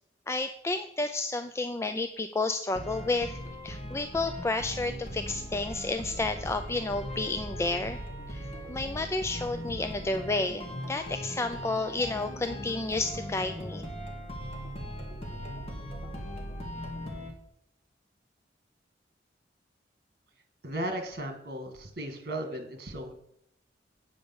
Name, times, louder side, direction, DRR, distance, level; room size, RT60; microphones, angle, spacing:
voice 1, 0.3-8.0 8.3-13.8, left 3 dB, 15° left, 8 dB, 0.3 m, -31 dB
sound 1, 2.7-17.3, equal, 35° left, 2.0 m, -39 dB
voice 2, 20.6-23.1, right 1 dB, 55° right, 6 dB, 1.9 m, -36 dB
8.9 x 5.2 x 7.0 m, 0.73 s
head